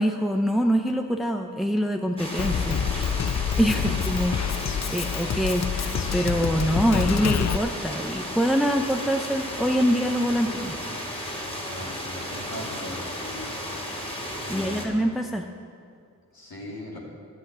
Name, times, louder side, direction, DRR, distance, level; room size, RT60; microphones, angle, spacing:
voice 1, 0.0-3.2 3.6-4.4 4.9-10.8 14.5-15.5, equal, ahead, 4 dB, 0.7 m, -25 dB
sound 1, 2.2-14.9, equal, 15° left, 2.5 m, -34 dB
Drum kit, 2.4-7.6, left 8 dB, 50° left, 0.5 m, -27 dB
voice 2, 11.7-13.6 14.4-14.9 16.3-17.0, left 1 dB, 80° left, -4 dB, 2.8 m, -39 dB
11.0 x 8.3 x 8.2 m, 2.3 s
cardioid pair, 45°, 36 cm